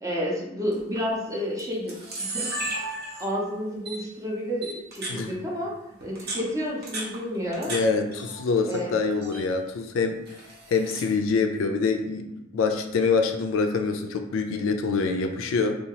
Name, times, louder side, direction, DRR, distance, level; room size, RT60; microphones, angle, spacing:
voice 1, 0.0-2.9 3.2-5.7 6.0-7.7 8.7-8.9, equal, 15° right, -3 dB, 0.5 m, -30 dB
Camera, 0.7-1.0 1.6-1.7 1.9-3.4 3.9-4.0 4.6-5.2 6.0-7.8 8.1-8.8 9.1-9.5 10.3-11.1, right 2 dB, 50° right, 0.8 m, -34 dB
voice 2, 7.7-10.2 10.7-12.3 12.5-15.8, left 4 dB, 70° left, 5 dB, 0.3 m, -25 dB
2.7 x 2.3 x 2.8 m, 0.85 s
head